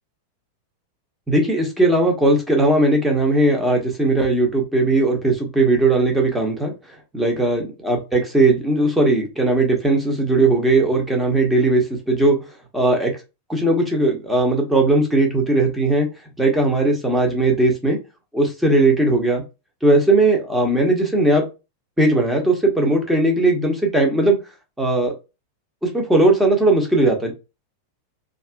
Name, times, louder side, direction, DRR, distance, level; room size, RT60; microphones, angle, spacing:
voice 1, 1.3-6.7 7.1-12.4 12.7-13.1 13.5-16.1 16.4-18.0 18.3-19.4 19.8-21.4 22.0-24.4 24.8-25.1 25.8-27.3, right 2 dB, 5° right, 0 dB, 0.9 m, -18 dB
2.8 x 2.5 x 2.2 m, 0.27 s
figure-of-eight pair, 90°, 0 cm